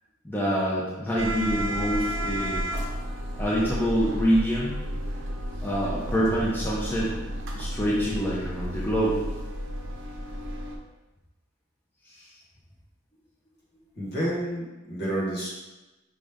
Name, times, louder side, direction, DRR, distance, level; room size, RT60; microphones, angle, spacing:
voice 1, 0.2-2.6 3.4-4.8 5.6-7.1 7.5-9.2, equal, 10° left, -7 dB, 0.6 m, -26 dB
sound 1, 1.2-10.8, equal, 65° right, 0.6 m, -32 dB
voice 2, 13.9-15.5, right 1 dB, 50° left, -5 dB, 1.4 m, -29 dB
5.1 x 2.6 x 3.4 m, 1.1 s
head